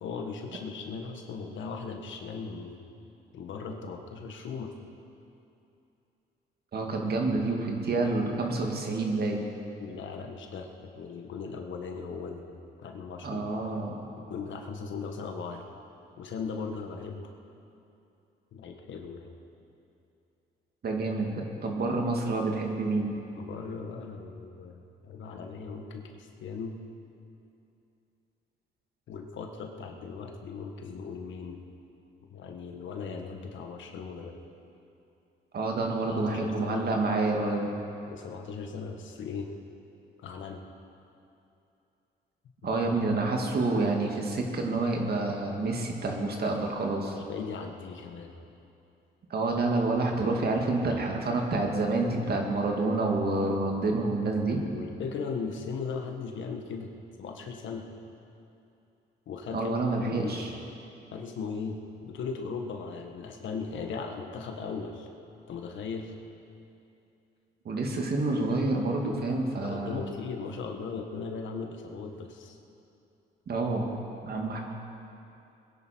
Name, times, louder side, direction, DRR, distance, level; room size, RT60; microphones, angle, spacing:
voice 1, 0.0-2.8 3.3-4.7 9.8-13.4 14.2-15.6 16.2-17.3 18.5-19.3 23.3-26.8 29.1-31.6 32.3-34.4 36.1-36.9 38.1-39.5 40.2-40.6 42.6-42.7 47.1-48.3 54.3-56.9 57.2-57.9 59.3-59.7 60.0-60.6 61.1-65.1 65.5-66.1 69.6-72.6, left 5 dB, 70° left, 3 dB, 1.6 m, -38 dB
voice 2, 6.7-9.4 13.2-14.0 20.8-23.1 35.5-37.7 42.6-47.2 49.3-54.6 59.5-60.5 67.6-70.0 73.5-73.9 74.2-74.6, right 3 dB, 50° right, 1 dB, 2.3 m, -28 dB
21.5 x 10.5 x 4.6 m, 2.7 s
cardioid pair, 90°, 20 cm